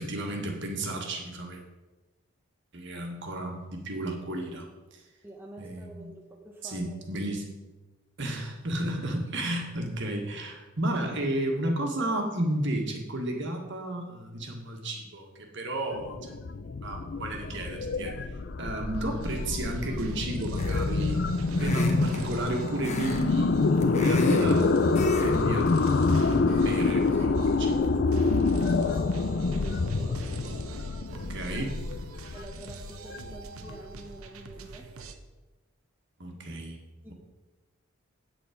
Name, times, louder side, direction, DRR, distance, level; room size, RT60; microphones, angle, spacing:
voice 1, 0.0-1.6 2.7-5.0 5.6-6.1 6.6-7.5 8.2-16.6 16.8-18.3 18.6-21.2 21.5-26.3 26.6-27.8 31.1-31.8 36.2-36.8, right 1 dB, 55° right, 2 dB, 1.7 m, -33 dB
voice 2, 5.2-7.1 27.7-30.2 32.3-34.9 37.0-37.1, right 1 dB, 10° right, 0 dB, 0.8 m, -46 dB
sound 1, 15.9-33.7, left 3 dB, 50° left, 0.5 m, -26 dB
sound 2, 18.9-35.1, right 3 dB, 75° right, 0.9 m, -44 dB
sound 3, 20.6-21.0 21.6-22.2 22.8-23.2 23.6-24.5 24.9-25.4 25.7-25.9, left 1 dB, 30° left, 1.1 m, -35 dB
8.6 x 8.3 x 5.1 m, 1.1 s
head